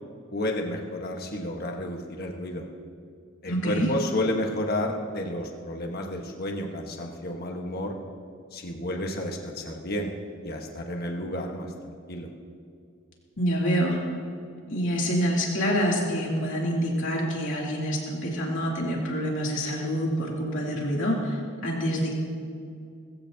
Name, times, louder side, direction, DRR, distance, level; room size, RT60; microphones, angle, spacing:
voice 1, 0.3-2.7 3.4-8.0 8.5-10.1 10.4-12.3, left 1 dB, 45° left, 2 dB, 1.4 m, -31 dB
voice 2, 3.5-3.9 13.4-14.0 14.7-22.1, equal, 60° left, -3 dB, 2.9 m, -26 dB
20.5 x 15.5 x 2.9 m, 2.4 s
head